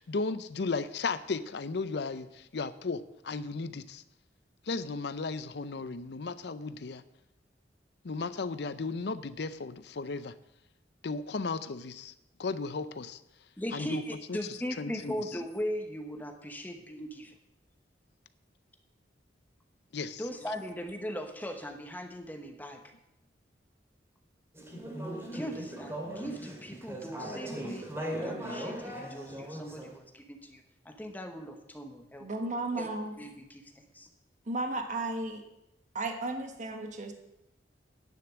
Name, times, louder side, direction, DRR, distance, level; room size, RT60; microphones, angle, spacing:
voice 1, 0.0-4.0 4.7-7.0 8.0-10.3 11.0-12.1 12.4-13.2 13.7-14.0 14.3-14.4 14.8-15.1 19.9-20.2, left 4 dB, 70° left, 13 dB, 0.6 m, -35 dB
voice 2, 13.6-17.4 20.2-22.8 25.3-32.3 32.8-32.9 33.2-34.1, equal, 10° left, 5 dB, 1.0 m, -39 dB
Conversation / Chatter, 24.6-29.9, right 1 dB, 15° right, 2.3 m, -38 dB
voice 3, 32.2-33.1 34.5-35.4 35.9-37.1, right 2 dB, 45° right, 5 dB, 1.3 m, -34 dB
10.0 x 6.8 x 7.3 m, 0.88 s
head